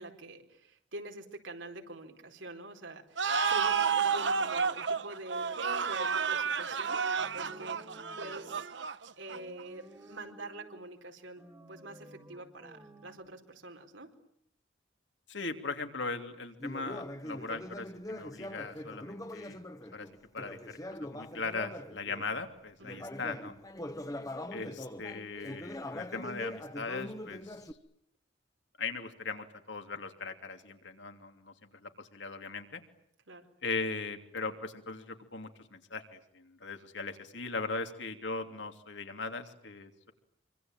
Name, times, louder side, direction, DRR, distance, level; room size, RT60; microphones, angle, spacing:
voice 1, 0.0-7.1 7.3-7.8 8.2-14.1 22.8-23.0 33.3-33.5, right 2 dB, 90° right, 4 dB, 4.5 m, -46 dB
sound 1, 3.2-9.6, right 6 dB, 70° right, 1.2 m, -31 dB
sound 2, 7.2-8.7 9.3-10.9 11.4-13.3, right 1 dB, 20° right, 2.2 m, -54 dB
voice 2, 15.3-19.6 19.9-20.1 20.3-23.5 24.5-27.6 28.8-31.5 31.8-32.8 33.6-40.1, left 3 dB, 75° left, 6 dB, 3.0 m, -39 dB
Conversation, 16.6-22.3 22.8-27.7, left 1 dB, 20° left, 1.4 m, -42 dB
26.5 x 25.0 x 9.0 m, 0.71 s
head